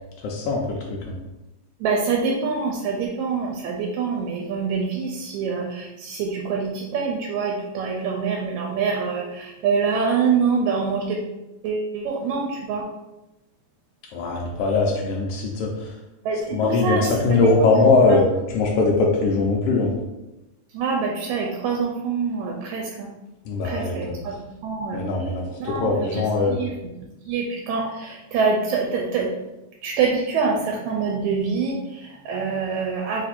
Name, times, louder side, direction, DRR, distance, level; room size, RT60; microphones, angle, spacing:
voice 1, 0.2-1.2 14.1-15.7 16.5-18.2 18.5-19.9 23.5-24.2 24.9-26.6, left 3 dB, 85° left, -2 dB, 1.3 m, -21 dB
voice 2, 1.8-11.2 11.6-12.9 16.3-18.2 20.7-23.1 23.6-25.3 25.6-26.8 27.2-29.3 29.8-33.2, right 5 dB, 80° right, 0 dB, 1.9 m, -25 dB
4.5 x 2.6 x 4.2 m, 0.98 s
omnidirectional pair, 3.3 m